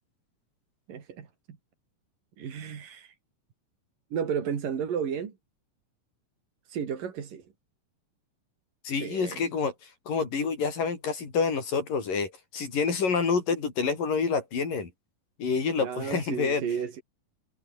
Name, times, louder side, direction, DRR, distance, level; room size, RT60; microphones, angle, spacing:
voice 1, 0.9-1.3 2.4-3.1 4.1-5.3 6.7-7.4 9.0-9.5 15.8-17.0, right 7 dB, 85° right, 4.7 m, -33 dB
voice 2, 8.8-9.7 10.1-14.9 15.4-16.6, left 5 dB, 85° left, 6.7 m, -28 dB
omnidirectional pair, 3.8 m